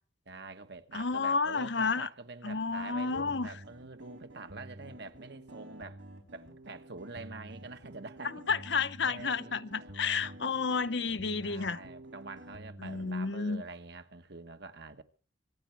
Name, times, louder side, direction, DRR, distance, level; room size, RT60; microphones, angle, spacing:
voice 1, 0.3-6.0 6.3-8.3 9.0-10.8 11.4-15.0, right 3 dB, 60° right, 1.4 m, -46 dB
voice 2, 0.9-2.1 2.4-3.5 8.5-11.8 12.8-13.6, left 4 dB, 65° left, 0.9 m, -31 dB
sound 1, 2.5-13.1, right 1 dB, 85° right, 5.1 m, -50 dB
25.5 x 9.6 x 4.6 m
head